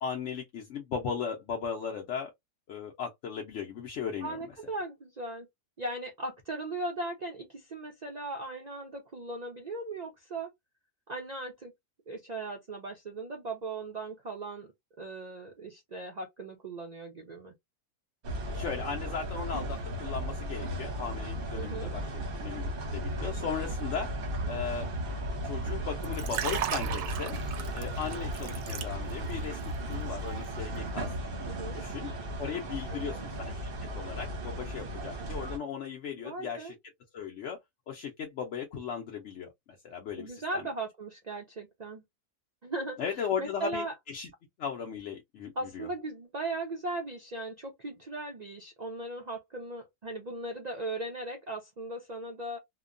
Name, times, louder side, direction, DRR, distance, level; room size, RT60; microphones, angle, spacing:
voice 1, 0.0-2.3 2.7-4.4 18.5-24.1 24.5-24.9 25.4-27.4 27.7-31.1 31.4-32.1 32.4-36.7 37.1-37.6 37.9-39.5 39.8-40.6 43.0-44.3 44.6-45.9, left 7 dB, 60° left, 0.8 m, -37 dB
voice 2, 4.2-5.5 5.8-10.5 11.1-11.7 12.1-14.7 15.0-17.5 21.5-21.9 31.4-31.8 32.9-33.2 36.1-36.7 40.2-42.0 42.6-43.9 45.6-52.6, right 2 dB, 65° right, 0.4 m, -38 dB
sound 1, 18.2-35.6, right 1 dB, 45° right, 0.8 m, -35 dB
Liquid, 26.0-29.3 29.6-29.9, right 10 dB, 90° right, 1.2 m, -36 dB
2.8 x 2.2 x 2.5 m
omnidirectional pair, 1.6 m